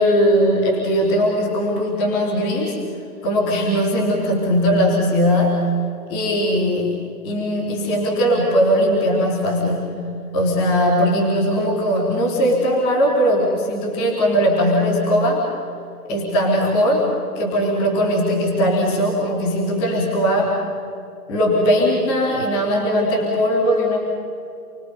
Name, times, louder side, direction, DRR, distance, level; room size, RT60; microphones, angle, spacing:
voice 1, 0.0-2.8 3.2-5.6 6.1-9.9 10.3-15.4 16.1-17.0 17.3-20.6 21.3-24.0, equal, ahead, -14 dB, 0.6 m, -19 dB
29.5 x 20.0 x 5.4 m, 2.6 s
figure-of-eight pair, 150°, 47 cm